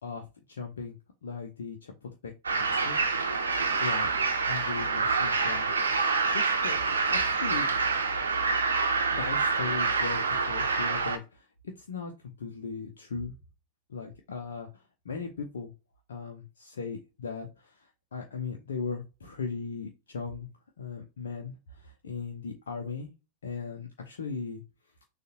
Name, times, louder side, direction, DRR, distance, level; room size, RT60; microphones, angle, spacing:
voice 1, 0.0-3.0 3.6-5.7 6.0-7.7 9.2-11.5 11.8-12.1 12.4-13.3 13.9-14.7 15.0-15.7 16.1-20.5 20.8-23.1 23.4-24.6, left 5 dB, 65° left, 2 dB, 0.7 m, -38 dB
sound 1, 2.4-11.2, right 4 dB, 75° right, 0.8 m, -27 dB
6.4 x 2.5 x 2.8 m, 0.29 s
figure-of-eight pair, 90°, 0 cm